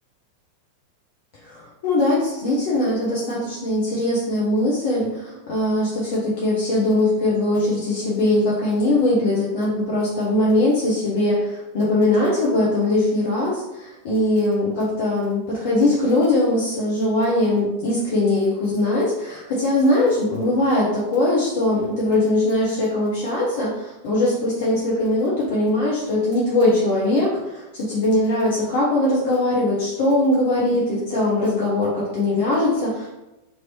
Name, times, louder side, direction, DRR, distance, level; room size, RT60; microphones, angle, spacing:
voice 1, 1.4-33.1, left 1 dB, 50° left, -6 dB, 0.8 m, -21 dB
3.0 x 2.7 x 3.1 m, 0.99 s
figure-of-eight pair, 90°, 0 cm